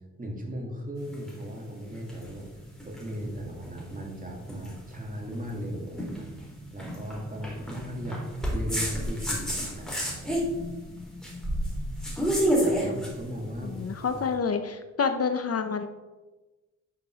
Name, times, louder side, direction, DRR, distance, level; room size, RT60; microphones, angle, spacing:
voice 1, 0.2-2.5 2.8-6.3 6.7-8.2 8.5-10.4 12.3-14.2, equal, 25° right, 0 dB, 2.7 m, -37 dB
sound 1, 1.0-14.2, equal, ahead, 3.3 m, -31 dB
voice 2, 13.6-15.9, left 5 dB, 50° left, 8 dB, 0.8 m, -28 dB
10.5 x 6.0 x 6.2 m, 1.2 s
wide cardioid pair, 110°, 30 cm